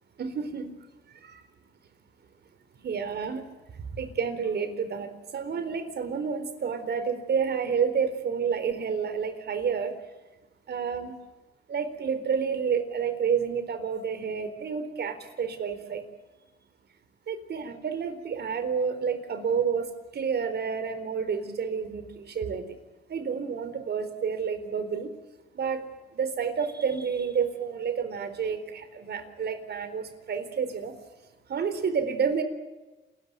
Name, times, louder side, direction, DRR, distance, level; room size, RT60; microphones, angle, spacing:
voice 1, 0.2-0.7 1.2-1.4 2.8-3.4 3.9-9.9 10.7-11.1 11.7-16.0 17.3-22.6 23.1-25.1 25.5-25.8 26.1-30.9 31.5-32.4, right 6 dB, 55° right, 10 dB, 4.1 m, -29 dB
28.5 x 14.5 x 9.1 m, 1.1 s
cardioid pair, 90°, 20 cm